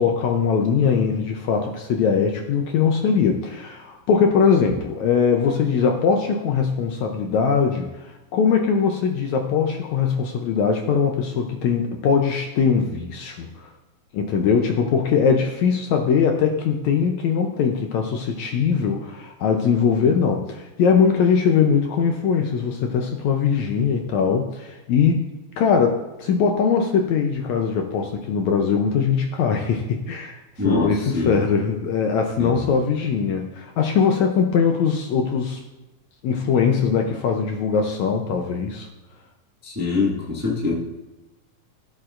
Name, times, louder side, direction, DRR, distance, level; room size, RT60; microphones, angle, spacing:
voice 1, 0.0-13.7 14.1-25.3 25.6-35.6 36.2-38.9, left 6 dB, 75° left, 3 dB, 1.8 m, -21 dB
voice 2, 39.6-40.7, left 4 dB, 10° right, -5 dB, 0.9 m, -23 dB
16.5 x 7.6 x 2.5 m, 1.0 s
omnidirectional pair, 3.8 m